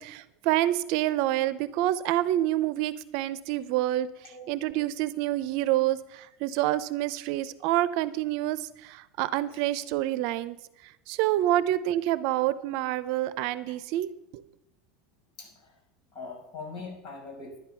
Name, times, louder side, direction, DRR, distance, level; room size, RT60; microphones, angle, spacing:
voice 1, 0.0-10.6 10.8-14.4, right 14 dB, 60° right, 16 dB, 0.7 m, -28 dB
voice 2, 15.4-15.7 16.1-17.6, left 3 dB, 40° left, -1 dB, 6.0 m, -41 dB
11.5 x 11.0 x 5.7 m, 0.86 s
supercardioid pair, 140°, 0 cm